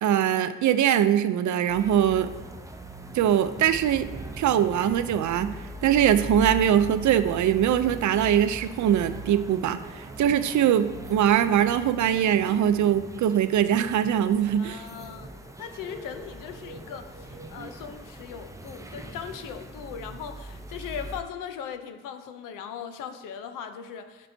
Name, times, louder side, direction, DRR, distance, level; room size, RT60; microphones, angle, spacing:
voice 1, 0.0-2.3 3.1-4.1 4.4-5.6 5.8-14.8, right 10 dB, 65° right, 12 dB, 0.5 m, -22 dB
sound 1, 1.7-21.2, right 1 dB, 10° right, 0.6 m, -41 dB
sound 2, 2.9-17.8, right 2 dB, 40° right, 0.8 m, -47 dB
voice 2, 14.6-15.3 15.6-24.3, left 7 dB, 85° left, 8 dB, 0.7 m, -39 dB
9.9 x 5.4 x 2.7 m, 1.2 s
supercardioid pair, 55°, 31 cm